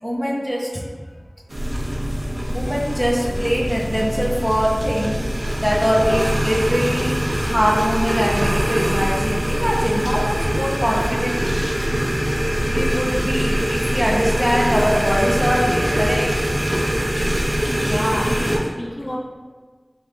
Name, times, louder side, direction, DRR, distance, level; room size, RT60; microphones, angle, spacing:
voice 1, 0.0-0.9 1.6-1.9 2.5-5.2 5.6-11.5 12.6-16.3, equal, 5° right, -3 dB, 0.8 m, -22 dB
sound 1, 1.5-18.6, equal, 65° right, 0.8 m, -22 dB
voice 2, 17.7-19.2, equal, 45° left, -4 dB, 0.8 m, -27 dB
3.5 x 3.4 x 3.7 m, 1.5 s
wide cardioid pair, 50°, 0 cm